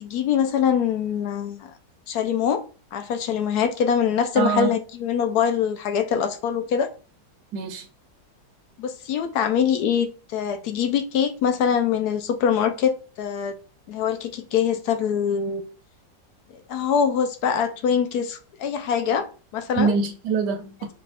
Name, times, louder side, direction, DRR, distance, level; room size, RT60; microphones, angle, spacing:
voice 1, 0.0-1.7 2.1-2.6 2.9-6.9 8.8-13.6 13.9-15.6 16.5-19.3 19.5-19.9, left 7 dB, 70° left, 1.0 m, -23 dB
voice 2, 4.4-4.7 7.5-7.9 19.8-20.9, right 5 dB, 75° right, 1.1 m, -24 dB
4.9 x 2.3 x 4.0 m
omnidirectional pair, 2.0 m